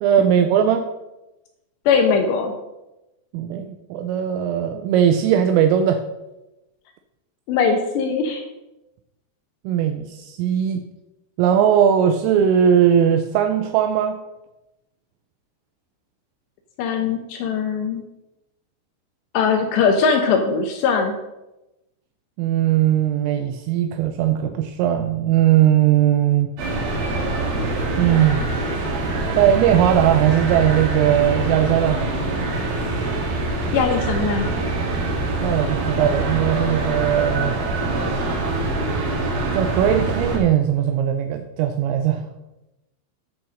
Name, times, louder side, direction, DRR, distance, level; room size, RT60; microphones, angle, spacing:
voice 1, 0.0-0.9 3.3-6.0 9.6-10.8 11.4-14.2 22.4-26.5 28.0-28.5 29.3-32.0 35.4-37.6 39.5-42.3, right 9 dB, 85° right, 7 dB, 3.1 m, -19 dB
voice 2, 1.9-2.5 7.5-8.4 16.8-18.0 19.3-21.1 33.7-34.5, left 5 dB, 75° left, 4 dB, 2.7 m, -20 dB
sound 1, 26.6-40.4, right 2 dB, 55° right, 3.1 m, -24 dB
10.0 x 6.1 x 6.3 m, 0.97 s
omnidirectional pair, 6.0 m